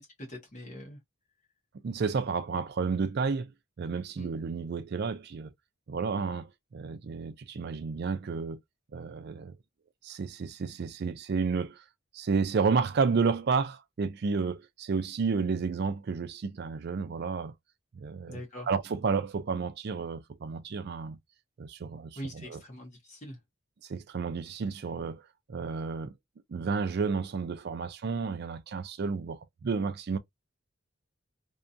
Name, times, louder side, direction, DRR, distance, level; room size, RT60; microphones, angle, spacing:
voice 1, 0.2-1.0 4.2-4.3 18.3-18.7 22.2-23.4, equal, 35° left, 0.8 m, -42 dB
voice 2, 1.8-3.5 3.8-5.5 5.9-8.6 8.9-9.6 10.0-11.8 12.1-17.5 17.9-18.4 18.7-21.2 21.6-22.6 23.8-25.2 25.5-26.1 26.5-30.2, right 5 dB, 50° right, 0.4 m, -31 dB
2.7 x 2.2 x 2.4 m
head